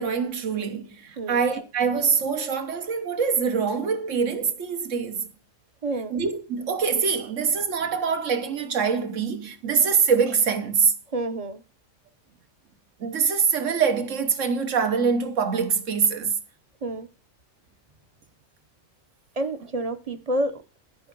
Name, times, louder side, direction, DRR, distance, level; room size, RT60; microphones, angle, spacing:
voice 1, 0.0-5.3 6.1-10.9 13.0-16.3, right 6 dB, 75° right, 1.5 m, -24 dB
voice 2, 5.8-6.2 11.1-11.6 16.8-17.1 19.4-20.6, right 1 dB, 35° right, 0.8 m, -29 dB
11.5 x 5.5 x 5.3 m
omnidirectional pair, 1.3 m